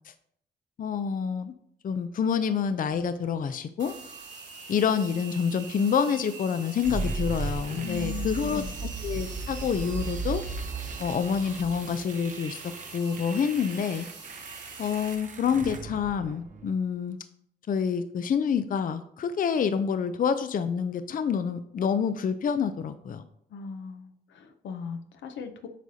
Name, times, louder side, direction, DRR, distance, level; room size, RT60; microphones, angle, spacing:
voice 1, 0.8-1.5 1.8-3.9 4.7-10.4 11.0-14.1 14.8-17.2 17.7-23.2, left 7 dB, 50° left, 11 dB, 0.5 m, -27 dB
sound 1, 3.8-15.2, right 5 dB, 80° right, 1.5 m, -44 dB
sound 2, 6.8-16.8, right 3 dB, 45° right, 0.9 m, -36 dB
voice 2, 7.8-8.7 23.5-25.7, left 6 dB, 85° left, 7 dB, 0.7 m, -38 dB
8.1 x 4.8 x 2.8 m, 0.69 s
cardioid pair, 65°, 18 cm